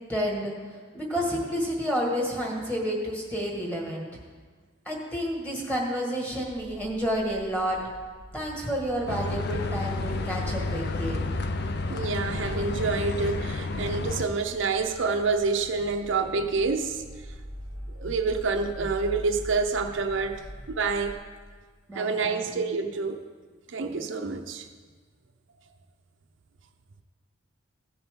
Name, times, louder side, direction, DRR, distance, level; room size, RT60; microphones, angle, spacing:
voice 1, 0.1-0.5 0.9-4.1 4.9-7.8 8.3-11.2 21.9-22.6, equal, 10° left, -2 dB, 1.7 m, -30 dB
sound 1, 6.4-21.1, equal, 80° left, 2.6 m, -43 dB
sound 2, 9.1-14.3, left 3 dB, 55° left, 0.6 m, -30 dB
voice 2, 11.9-17.0 18.0-21.2 22.0-23.2 23.7-24.7, right 4 dB, 65° right, 5 dB, 0.6 m, -27 dB
16.0 x 6.9 x 3.7 m, 1.5 s
head